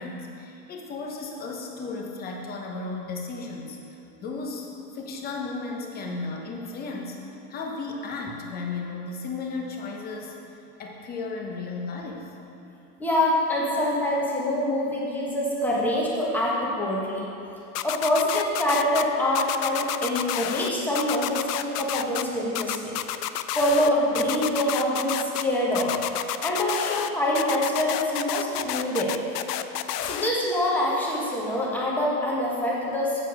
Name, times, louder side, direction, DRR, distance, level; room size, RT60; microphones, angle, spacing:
voice 1, 0.0-3.8 4.2-7.2 7.5-10.3 10.8-12.3, left 3 dB, 20° left, 0 dB, 0.9 m, -34 dB
voice 2, 13.0-17.2 17.8-23.0 23.5-25.9 26.4-29.1 30.0-33.2, left 1 dB, 5° left, -5 dB, 1.3 m, -25 dB
sound 1, 17.7-19.0 19.3-20.7 20.9-22.2 22.5-23.9 24.1-25.4 25.7-27.1 27.3-30.3, left 12 dB, 85° left, 0.6 m, -29 dB
7.9 x 6.9 x 4.8 m, 3.0 s
supercardioid pair, 140°, 46 cm